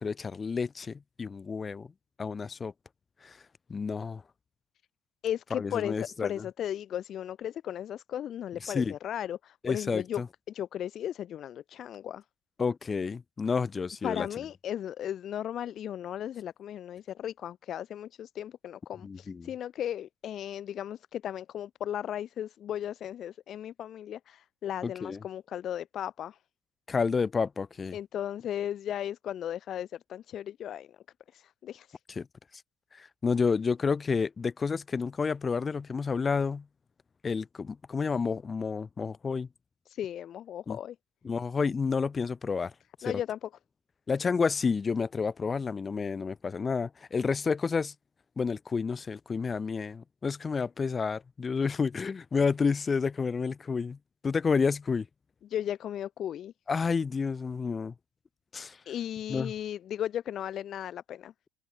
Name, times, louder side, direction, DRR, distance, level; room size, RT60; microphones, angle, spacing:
voice 1, 0.0-1.9 2.2-2.7 3.2-3.4 3.7-4.2 5.5-6.5 8.6-8.9 9.6-10.3 12.6-14.3 19.0-19.5 24.8-25.2 26.9-28.0 32.1-32.3 32.9-36.6 37.2-39.5 40.7-40.8 41.2-42.7 43.0-43.1 44.1-47.9 48.4-54.0 54.2-55.1 56.7-57.9 58.5-58.8 59.3-59.5, left 5 dB, 25° left, 1.2 m, -30 dB
voice 2, 5.2-10.2 10.5-12.2 14.0-26.4 27.9-30.9 31.3-32.0 39.9-41.0 43.0-43.4 55.5-56.5 58.9-61.3, left 10 dB, 45° left, 0.6 m, -36 dB
hypercardioid pair, 80°, 0 cm